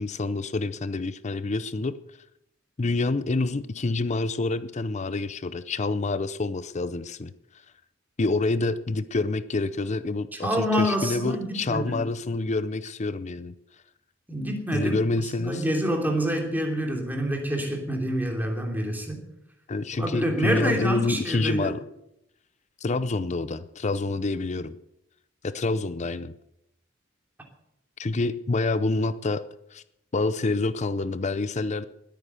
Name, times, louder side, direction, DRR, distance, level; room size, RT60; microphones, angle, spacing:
voice 1, 0.0-2.0 2.8-7.3 8.2-13.5 14.7-15.6 19.7-21.8 22.8-24.8 25.4-26.3 28.0-29.4 29.7-29.8 30.1-31.8, left 3 dB, 35° left, 14 dB, 0.6 m, -27 dB
voice 2, 10.3-12.1 14.3-15.0 15.4-19.2 19.9-21.7, equal, 10° right, 2 dB, 2.9 m, -27 dB
20.0 x 9.2 x 6.9 m, 0.82 s
head